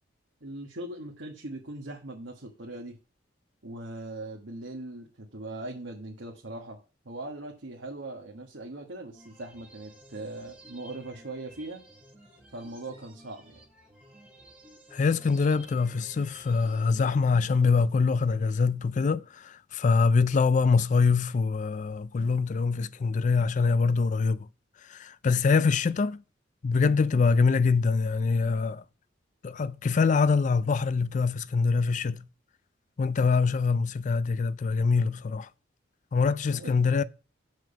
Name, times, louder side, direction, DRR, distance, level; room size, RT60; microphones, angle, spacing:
voice 1, 0.4-3.0 3.6-6.8 7.0-11.8 12.5-13.6 36.5-36.8, right 2 dB, 80° right, 1.4 m, -40 dB
sound 1, 9.1-17.1, right 1 dB, 5° right, 4.3 m, -54 dB
voice 2, 14.9-24.5 24.9-26.2 26.6-28.8 29.4-32.3 33.0-35.5 36.1-37.0, left 4 dB, 40° left, 0.3 m, -24 dB
6.9 x 6.3 x 5.1 m
head